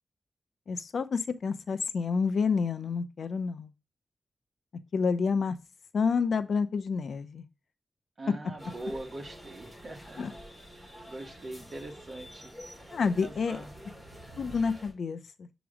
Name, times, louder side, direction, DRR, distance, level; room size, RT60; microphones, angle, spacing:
voice 1, 0.7-3.7 4.9-5.6 5.9-7.5 10.2-10.3 12.9-13.6 14.4-15.5, left 5 dB, 75° left, 0.6 m, -29 dB
voice 2, 8.2-10.4 10.8-12.5 13.2-13.7, right 2 dB, 45° right, 1.4 m, -42 dB
sound 1, 8.6-14.9, equal, 20° right, 3.6 m, -48 dB
7.1 x 3.1 x 4.9 m
wide cardioid pair, 140°, 0 cm